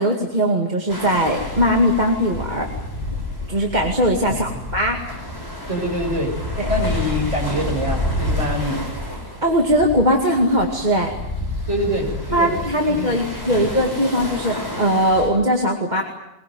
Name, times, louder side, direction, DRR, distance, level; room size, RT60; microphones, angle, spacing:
voice 1, 0.0-2.7 3.5-5.0 6.6-6.7 9.4-11.1 12.3-16.0, equal, 25° right, 1 dB, 2.4 m, -20 dB
sound 1, 0.9-15.3, left 1 dB, 15° left, 7.6 m, -29 dB
voice 2, 5.7-6.4 6.7-8.9 11.7-13.8, equal, 45° right, 0 dB, 7.7 m, -25 dB
22.0 x 22.0 x 9.5 m, 0.90 s
omnidirectional pair, 1.7 m